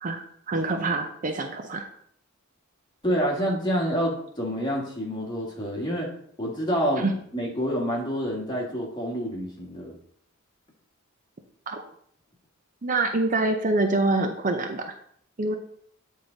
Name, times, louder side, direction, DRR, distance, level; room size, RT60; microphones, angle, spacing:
voice 1, 0.0-1.9 7.0-7.1 11.7-11.8 12.8-14.9 15.4-15.5, right 2 dB, 40° right, 6 dB, 0.5 m, -26 dB
voice 2, 3.0-6.1 6.4-10.0, equal, 20° left, -2 dB, 1.6 m, -28 dB
8.7 x 3.7 x 3.9 m, 0.65 s
head